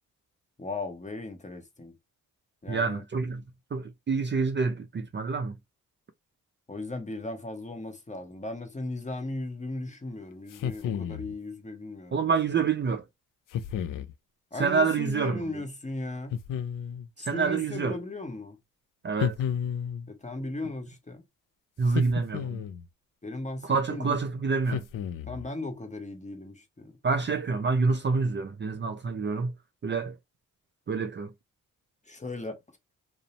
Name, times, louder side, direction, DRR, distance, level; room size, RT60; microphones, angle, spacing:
voice 1, 0.6-1.9 2.6-3.0 6.7-12.3 14.5-16.4 17.2-18.5 20.1-21.2 23.2-24.2 25.2-26.9 32.1-32.6, left 2 dB, 20° left, 0.9 m, -37 dB
voice 2, 2.7-3.4 3.7-5.5 12.1-13.0 14.6-15.4 17.2-18.0 19.0-19.4 21.8-22.6 23.6-24.8 27.0-29.5 29.8-30.1 30.9-31.3, right 4 dB, 30° right, 0.5 m, -27 dB
sound 1, 10.5-11.3 13.5-14.1 16.3-17.1 19.2-20.1 21.9-22.9 24.7-25.5, left 8 dB, 60° left, 0.5 m, -32 dB
2.5 x 2.1 x 2.9 m
supercardioid pair, 45°, 36 cm